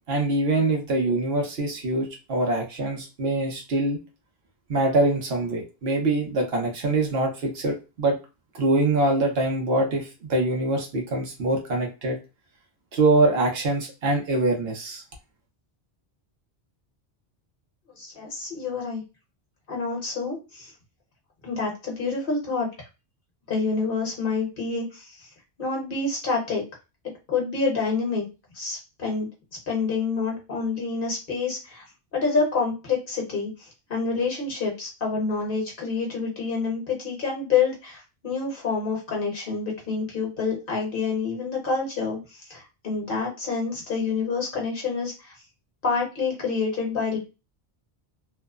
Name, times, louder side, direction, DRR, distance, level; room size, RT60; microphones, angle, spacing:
voice 1, 0.0-4.0 4.7-8.2 8.5-12.2 12.9-15.0, right 2 dB, 75° right, 1 dB, 1.0 m, -24 dB
voice 2, 17.9-19.0 19.7-20.7 21.4-22.7 23.5-25.3 25.6-26.6 27.3-28.2 28.5-29.3 29.7-31.8 32.1-45.3 45.8-47.2, left 4 dB, 60° left, -1 dB, 1.2 m, -27 dB
3.0 x 2.0 x 2.3 m, 0.28 s
omnidirectional pair, 1.1 m